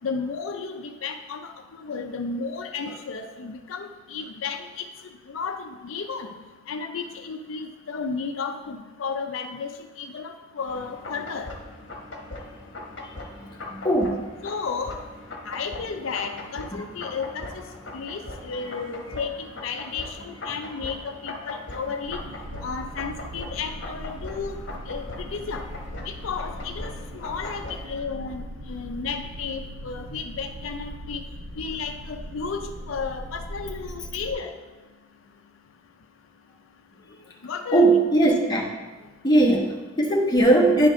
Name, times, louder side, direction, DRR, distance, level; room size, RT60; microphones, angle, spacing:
voice 1, 0.0-1.5 1.8-4.9 5.3-6.3 6.7-9.7 10.0-11.5 14.4-15.0 15.5-17.6 17.9-22.2 22.6-24.6 24.9-25.6 26.1-31.2 31.6-34.5 37.4-37.9, left 5 dB, 80° left, 6 dB, 0.5 m, -33 dB
sound 1, 10.7-27.8, left 2 dB, 60° left, 1.1 m, -40 dB
voice 2, 13.7-14.3 37.7-38.7 39.2-40.9, right 2 dB, 20° left, -2 dB, 1.1 m, -19 dB
sound 2, 22.0-34.3, equal, 50° right, 0.7 m, -39 dB
10.0 x 5.0 x 3.7 m, 1.2 s
head